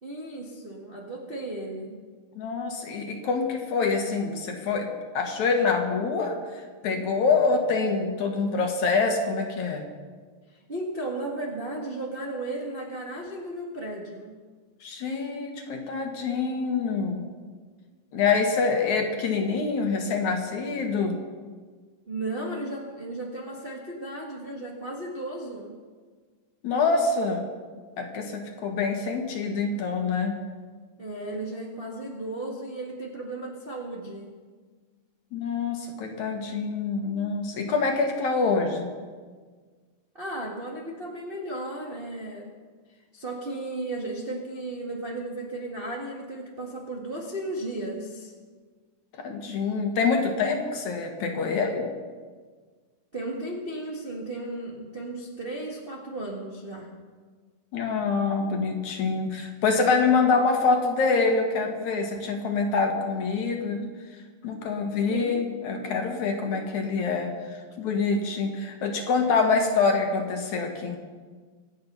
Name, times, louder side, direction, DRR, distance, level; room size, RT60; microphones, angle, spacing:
voice 1, 0.0-2.0 10.5-14.4 22.1-25.8 31.0-34.3 40.1-42.5 43.1-48.3 53.1-56.9 65.1-65.5, right 2 dB, 30° right, -2 dB, 1.0 m, -35 dB
voice 2, 2.4-4.9 5.1-9.8 14.8-17.3 18.1-21.2 26.6-27.5 28.0-30.4 35.3-38.9 49.2-51.9 57.7-63.9 64.4-71.0, left 4 dB, 60° left, 3 dB, 2.6 m, -26 dB
26.0 x 8.8 x 5.5 m, 1.5 s
omnidirectional pair, 4.1 m